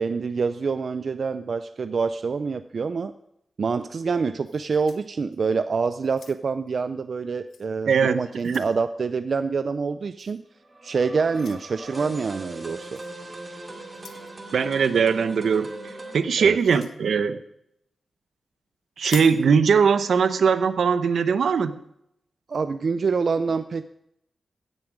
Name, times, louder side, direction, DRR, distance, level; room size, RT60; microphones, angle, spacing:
voice 1, 0.0-3.1 3.6-10.4 10.8-13.0 16.4-16.6 22.5-23.8, right 5 dB, 50° right, 11 dB, 0.4 m, -26 dB
sound 1, 4.4-5.6 6.0-6.7 7.5-7.7 8.1-8.8 10.2-10.4 11.3-11.6 12.9-13.1 13.9-14.3 16.5-17.0 19.0-19.4, left 6 dB, 75° left, 0.9 m, -42 dB
voice 2, 7.9-8.6 14.5-15.7 16.1-17.4 19.0-21.8, right 6 dB, 75° right, 12 dB, 0.8 m, -20 dB
sound 2, 10.6-16.2, right 2 dB, 30° right, 2.2 m, -40 dB
16.5 x 9.6 x 5.1 m, 0.78 s
wide cardioid pair, 180°, 0 cm